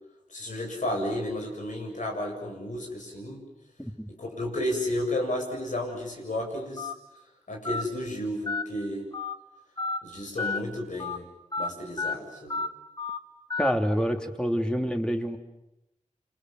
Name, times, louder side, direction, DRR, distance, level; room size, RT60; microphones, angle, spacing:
voice 1, 0.3-3.4 4.2-6.9 7.5-9.1 10.0-11.2 11.6-12.6, left 1 dB, 75° left, 1 dB, 7.9 m, -32 dB
Telephone, 6.8-6.9 7.6-7.8 8.5-8.6 9.1-9.3 9.8-10.0 10.4-10.6 11.0-11.2 11.5-11.7 12.0-12.1 12.5-12.7 13.0-13.2 13.5-13.7, left 4 dB, 30° left, 1.7 m, -30 dB
voice 2, 13.6-15.4, equal, 5° left, 4 dB, 3.0 m, -27 dB
29.0 x 27.0 x 7.7 m, 0.90 s
wide cardioid pair, 55°, 13 cm